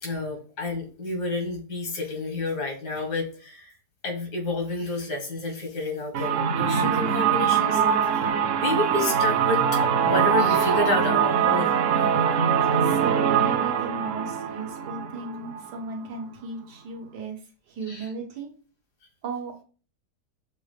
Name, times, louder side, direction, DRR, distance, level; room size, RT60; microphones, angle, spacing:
voice 1, 0.0-3.7 4.0-8.3 8.6-9.6 9.9-12.1 12.4-12.5 17.9-18.1, left 2 dB, 85° left, 1 dB, 2.0 m, -30 dB
sound 1, 6.1-15.8, right 7 dB, 65° right, 0.8 m, -23 dB
voice 2, 12.8-17.4 17.7-18.5 19.2-19.6, right 4 dB, 85° right, 2 dB, 1.7 m, -36 dB
6.8 x 2.4 x 3.2 m, 0.37 s
omnidirectional pair, 1.7 m